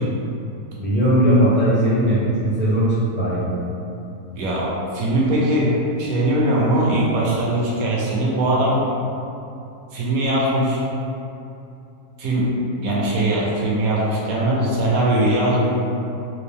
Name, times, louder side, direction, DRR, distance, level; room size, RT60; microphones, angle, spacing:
voice 1, 0.8-2.9 3.1-3.5, equal, 10° right, -11 dB, 0.5 m, -18 dB
voice 2, 4.3-8.8 9.9-10.8 12.2-12.5 12.8-15.7, right 1 dB, 70° right, -4 dB, 1.1 m, -20 dB
3.6 x 2.5 x 3.4 m, 2.7 s
omnidirectional pair, 1.6 m